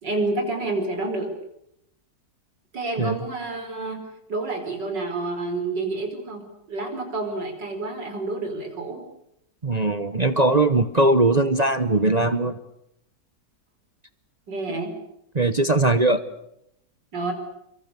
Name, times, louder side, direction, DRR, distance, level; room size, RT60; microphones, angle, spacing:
voice 1, 0.0-1.3 2.7-4.0 4.3-9.0 14.5-14.9 17.1-17.3, right 2 dB, 80° right, 5 dB, 5.6 m, -29 dB
voice 2, 9.6-12.6 14.7-14.8 15.3-16.2, right 2 dB, 30° right, 10 dB, 0.9 m, -20 dB
29.5 x 24.0 x 6.9 m, 0.81 s
omnidirectional pair, 1.9 m